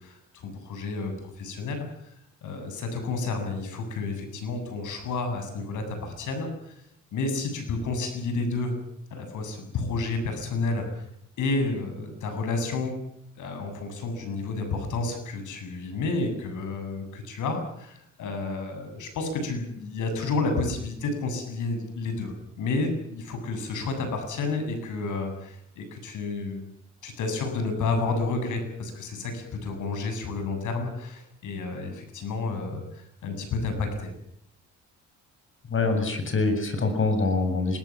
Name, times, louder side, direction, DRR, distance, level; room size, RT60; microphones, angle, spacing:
voice 1, 0.0-6.8 7.1-8.7 9.1-11.0 11.4-13.0 13.4-26.6 27.0-34.1, left 3 dB, 80° left, 7 dB, 7.9 m, -30 dB
voice 2, 35.7-37.8, left 3 dB, 40° left, 7 dB, 7.4 m, -24 dB
26.5 x 19.5 x 7.5 m, 0.73 s
cardioid pair, 90°, 30 cm